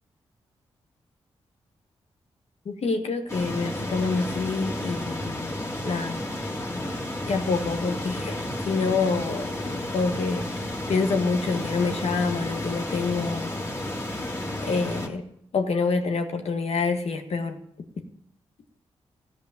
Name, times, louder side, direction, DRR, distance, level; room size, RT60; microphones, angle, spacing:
voice 1, 2.6-5.5 5.8-6.2 7.2-10.5 10.9-13.5 14.6-15.3 15.5-17.6, left 4 dB, 65° left, 5 dB, 1.6 m, -27 dB
sound 1, 3.3-15.1, left 1 dB, 25° left, 2.7 m, -32 dB
14.0 x 5.2 x 9.2 m, 0.71 s
supercardioid pair, 45°, 11 cm